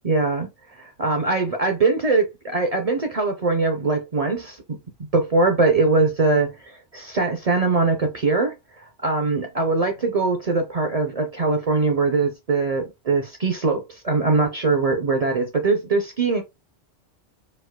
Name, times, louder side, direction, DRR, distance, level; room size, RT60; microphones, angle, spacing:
voice 1, 0.0-4.8 5.1-16.4, right 3 dB, 45° right, 0.5 m, -22 dB
4.3 x 2.6 x 2.2 m
omnidirectional pair, 1.2 m